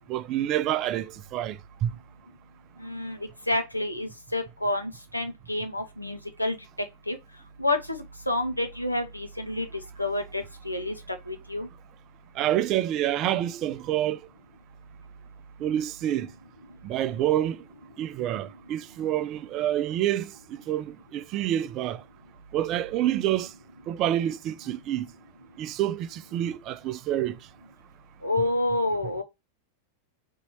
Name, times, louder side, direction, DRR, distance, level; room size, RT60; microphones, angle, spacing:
voice 1, 0.1-1.9 12.4-14.2 15.6-16.3 16.8-17.6 18.0-20.3 20.7-22.0 22.5-23.5 23.9-25.1 25.6-27.4, right 12 dB, 35° right, 0.4 m, -27 dB
voice 2, 2.8-3.2 3.5-6.6 7.1-7.2 7.6-9.7 10.0-11.7 28.2-29.2, left 2 dB, 85° left, 0.9 m, -29 dB
4.0 x 2.8 x 4.3 m
figure-of-eight pair, 90°, 0 cm